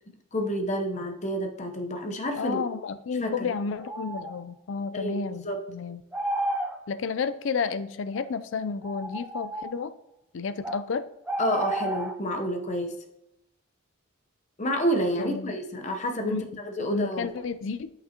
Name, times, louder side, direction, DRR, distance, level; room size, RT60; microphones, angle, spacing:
voice 1, 0.3-2.6 3.2-3.5 4.9-5.6 11.4-13.0 14.6-17.3, equal, 35° left, 5 dB, 0.8 m, -29 dB
voice 2, 2.4-6.0 6.9-9.9 10.3-11.0 15.2-15.5 16.2-16.5 16.8-17.9, left 5 dB, 65° left, 13 dB, 0.4 m, -31 dB
sound 1, 3.8-4.4 6.1-6.8 8.1-8.2 8.8-9.7 10.6-10.8 11.3-12.1, right 1 dB, 10° right, 0.5 m, -31 dB
8.4 x 6.0 x 2.8 m, 0.82 s
head